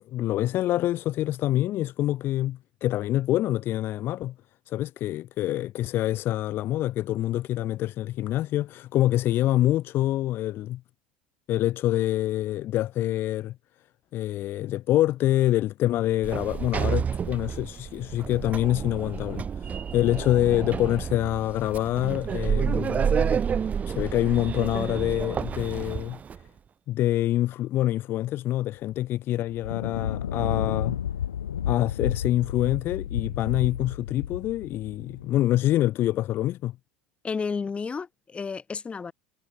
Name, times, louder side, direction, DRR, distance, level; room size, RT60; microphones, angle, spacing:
voice 1, 0.0-4.3 4.7-10.8 11.5-13.6 14.1-23.4 23.9-26.2 26.9-31.0 31.7-36.8, left 14 dB, 50° left, 1.8 m, -26 dB
Sliding door, 16.2-26.4, right 7 dB, 30° right, 5.2 m, -29 dB
sound 1, 28.9-29.0 29.5-35.5, left 9 dB, 85° left, 2.6 m, -31 dB
voice 2, 37.2-39.1, left 5 dB, 25° left, 7.2 m, -32 dB
hypercardioid pair, 80°, 5 cm